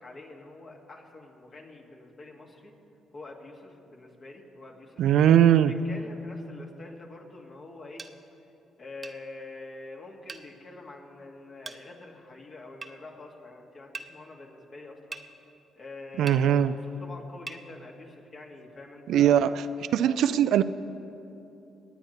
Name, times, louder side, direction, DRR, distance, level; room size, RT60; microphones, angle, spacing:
voice 1, 0.0-2.7 3.1-5.0 5.6-8.0 8.8-15.3 15.8-19.5, left 2 dB, 50° left, 0 dB, 2.0 m, -45 dB
voice 2, 5.0-5.7 16.2-16.7 19.1-19.5 19.9-20.6, right 10 dB, 75° right, 13 dB, 0.3 m, -20 dB
sound 1, 8.0-8.1 9.0-9.2 10.3-10.5 11.6-11.8 12.8-12.9 13.9-14.1 15.1-15.3 16.3-16.4 17.5-17.6, right 4 dB, 35° right, 0.7 m, -40 dB
24.0 x 9.3 x 3.2 m, 2.9 s
supercardioid pair, 70°, 0 cm